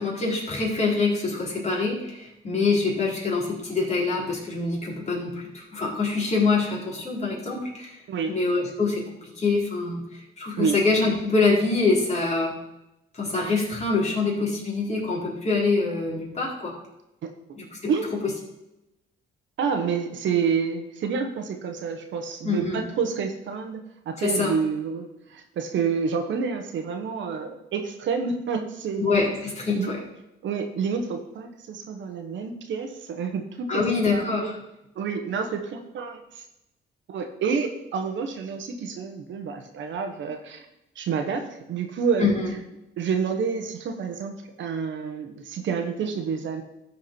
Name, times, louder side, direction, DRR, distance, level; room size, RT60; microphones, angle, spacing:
voice 1, 0.0-8.0 8.3-12.6 13.1-16.7 17.6-17.9 22.4-22.8 24.2-24.6 29.0-30.0 33.7-34.5 42.2-42.5, left 3 dB, 35° left, -4 dB, 3.7 m, -25 dB
voice 2, 19.6-23.8 24.0-29.0 29.7-29.9 30.4-33.8 34.1-34.5 34.9-36.4 37.1-40.7 40.9-42.3 43.0-46.6, right 6 dB, 70° right, 5 dB, 1.3 m, -28 dB
13.0 x 4.7 x 4.5 m, 0.90 s
cardioid pair, 90°, 20 cm